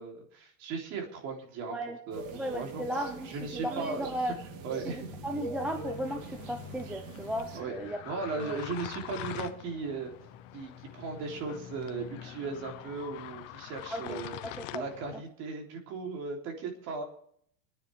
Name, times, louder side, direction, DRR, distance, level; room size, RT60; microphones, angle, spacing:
voice 1, 0.0-1.8 2.1-2.2 2.5-2.8 3.2-4.4 4.6-5.1 7.6-7.7 8.1-10.1 10.5-14.3 14.7-17.0, right 4 dB, 40° right, 1 dB, 3.6 m, -37 dB
sound 1, 2.1-7.6, right 4 dB, 70° right, 3.4 m, -43 dB
voice 2, 2.3-3.4 3.6-4.3 4.8-8.0 8.3-8.6 13.9-14.7 15.1-15.2, equal, 5° right, 4 dB, 0.5 m, -35 dB
sound 2, 4.3-13.4, left 10 dB, 35° left, 1.2 m, -50 dB
sound 3, 5.9-15.2, left 13 dB, 65° left, 1.1 m, -45 dB
24.5 x 9.9 x 3.5 m, 0.65 s
supercardioid pair, 175°, 40 cm